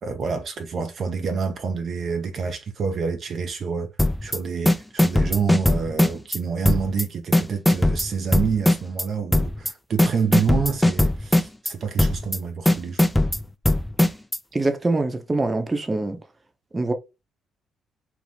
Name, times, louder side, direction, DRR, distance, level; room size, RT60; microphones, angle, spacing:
voice 1, 0.0-3.9 4.2-13.1, right 5 dB, 55° right, 0.4 m, -28 dB
sound 1, 4.0-4.4 4.7-6.4 6.7-7.0 7.3-9.0 9.3-9.7 10.0-11.7 12.0-12.4 12.7-14.4, left 1 dB, 10° left, 0.4 m, -19 dB
voice 2, 14.5-16.2 16.7-16.9, right 2 dB, 25° right, 0.7 m, -24 dB
2.6 x 2.1 x 3.2 m
hypercardioid pair, 50°, 0 cm